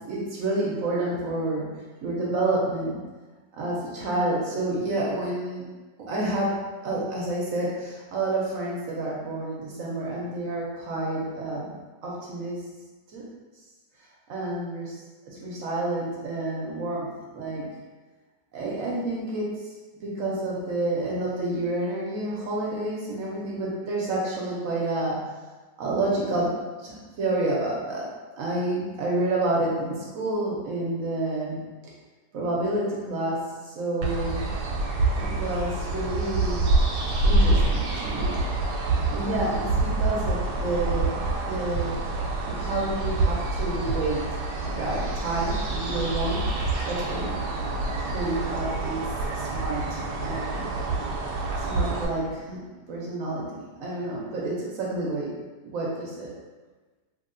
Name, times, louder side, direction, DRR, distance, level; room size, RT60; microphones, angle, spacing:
voice 1, 0.0-3.0 3.5-5.6 6.1-6.5 6.8-11.8 12.0-12.6 13.1-13.2 14.3-17.7 18.5-19.7 20.0-25.3 25.8-26.5 26.8-28.1 28.4-31.6 32.3-34.5 35.2-36.7 37.2-38.4 39.1-41.1 41.5-41.9 42.4-44.2 44.6-46.4 46.8-47.4 48.0-50.7 51.6-52.6 52.9-55.3 55.6-56.3, right 2 dB, 70° right, -4 dB, 0.8 m, -29 dB
sound 1, 34.0-52.1, right 2 dB, 85° right, 1.2 m, -26 dB
3.0 x 2.7 x 2.5 m, 1.3 s
omnidirectional pair, 1.8 m